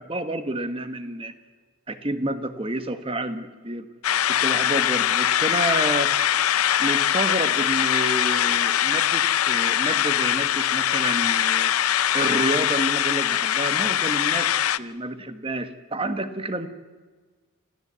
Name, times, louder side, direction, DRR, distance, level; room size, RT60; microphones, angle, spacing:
voice 1, 0.0-1.3 1.9-3.9 4.3-6.1 6.8-11.7 12.1-14.5 14.8-16.7, right 1 dB, 25° right, 9 dB, 1.4 m, -29 dB
sound 1, 4.0-14.8, left 10 dB, 85° left, 0.6 m, -22 dB
27.5 x 15.5 x 8.2 m, 1.4 s
head